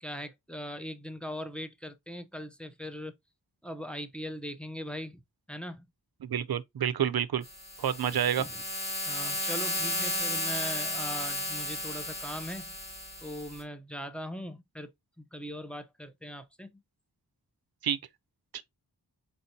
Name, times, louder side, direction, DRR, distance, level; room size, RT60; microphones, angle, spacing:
voice 1, 0.0-3.1 3.6-5.2 5.5-5.9 8.4-8.5 9.1-12.8 13.2-14.9 15.2-16.8, equal, 5° left, 0.6 m, -40 dB
voice 2, 6.2-7.4 7.8-8.4 17.8-18.0 18.5-18.6, right 9 dB, 60° right, 0.5 m, -28 dB
sound 1, 7.4-13.6, left 1 dB, 40° left, 3.1 m, -34 dB
4.4 x 4.1 x 2.7 m
wide cardioid pair, 65°, 41 cm